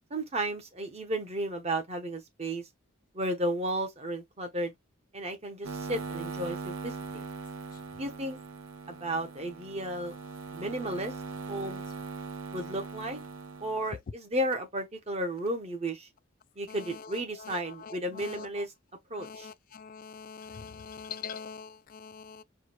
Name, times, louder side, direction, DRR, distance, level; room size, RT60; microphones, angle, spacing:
voice 1, 0.1-2.7 3.1-4.7 5.1-7.2 8.0-8.4 8.9-10.1 10.5-11.1 11.5-11.8 12.5-13.2 13.6-16.1 16.6-18.7 19.1-19.5, right 1 dB, 30° right, 0.9 m, -33 dB
sound 1, 5.6-13.9, right 4 dB, 80° right, 0.7 m, -40 dB
voice 2, 19.2-22.4, left 6 dB, 40° left, 0.3 m, -43 dB
4.8 x 2.3 x 3.1 m
head